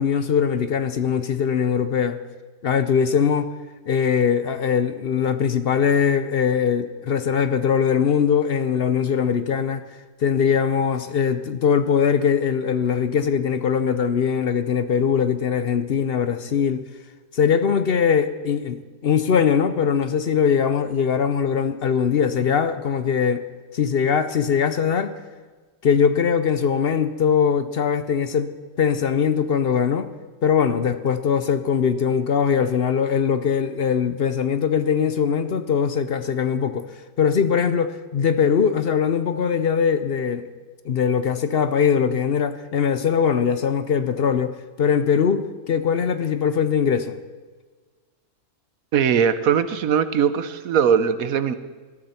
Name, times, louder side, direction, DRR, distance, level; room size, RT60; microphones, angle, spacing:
voice 1, 0.0-2.2 2.6-3.5 3.9-9.8 10.2-16.8 17.3-23.4 23.7-25.1 25.8-28.5 28.8-30.1 30.4-36.9 37.2-40.5 40.8-47.2, left 7 dB, 55° left, 11 dB, 0.8 m, -21 dB
voice 2, 48.9-51.6, right 7 dB, 85° right, 13 dB, 1.3 m, -20 dB
20.0 x 13.0 x 4.3 m, 1.4 s
omnidirectional pair, 1.5 m